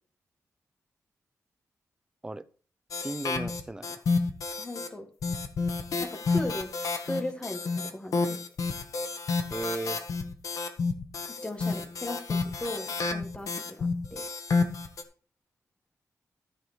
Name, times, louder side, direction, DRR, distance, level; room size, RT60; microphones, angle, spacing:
sound 1, 2.9-4.9 5.2-15.0, left 4 dB, 75° left, 1.6 m, -30 dB
voice 1, 3.0-4.0 9.5-10.0, right 2 dB, 15° right, 13 dB, 0.6 m, -35 dB
voice 2, 4.6-5.1 6.0-6.7 7.0-8.5 11.4-14.2, left 1 dB, 20° left, 5 dB, 2.0 m, -37 dB
14.0 x 4.9 x 6.3 m, 0.42 s
wide cardioid pair, 135°, 6 cm